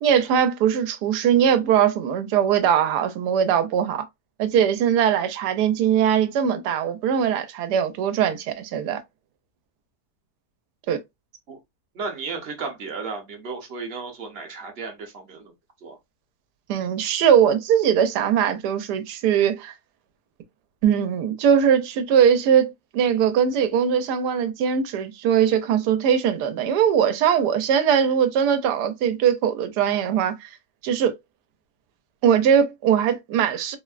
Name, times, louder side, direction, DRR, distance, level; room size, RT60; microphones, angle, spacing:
voice 1, 0.0-4.0 4.4-9.0 10.9-11.0 16.7-19.7 20.8-30.5 30.8-31.1 32.2-33.8, right 8 dB, 90° right, 1.2 m, -21 dB
voice 2, 11.9-15.5 15.8-16.0, right 4 dB, 45° right, 0.9 m, -34 dB
3.4 x 2.1 x 2.4 m
omnidirectional pair, 1.7 m